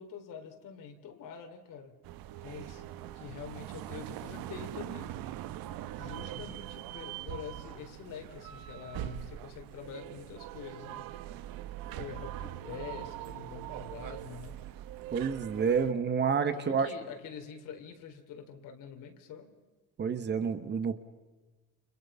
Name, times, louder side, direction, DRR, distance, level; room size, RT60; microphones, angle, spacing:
voice 1, 0.0-2.0 2.4-2.8 3.1-5.2 6.0-11.1 11.9-14.6 16.5-19.6, left 7 dB, 60° left, 5 dB, 4.0 m, -45 dB
sound 1, 2.0-15.9, right 12 dB, 70° right, 1.4 m, -42 dB
voice 2, 15.1-16.9 20.0-21.0, right 6 dB, 30° right, 10 dB, 1.4 m, -29 dB
30.0 x 29.5 x 5.7 m, 1.3 s
cardioid pair, 165°, 36 cm